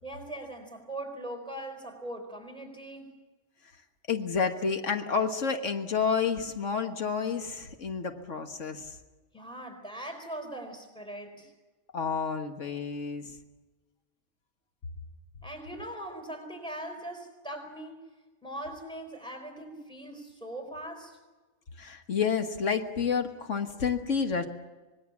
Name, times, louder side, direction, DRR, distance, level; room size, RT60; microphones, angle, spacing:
voice 1, 0.0-3.1 9.3-11.5 15.4-18.1 18.4-21.2, right 1 dB, 5° left, 5 dB, 4.5 m, -40 dB
voice 2, 4.1-9.0 11.9-13.4 21.8-24.5, left 6 dB, 85° left, 6 dB, 1.8 m, -30 dB
25.5 x 21.0 x 7.3 m, 1.2 s
omnidirectional pair, 1.2 m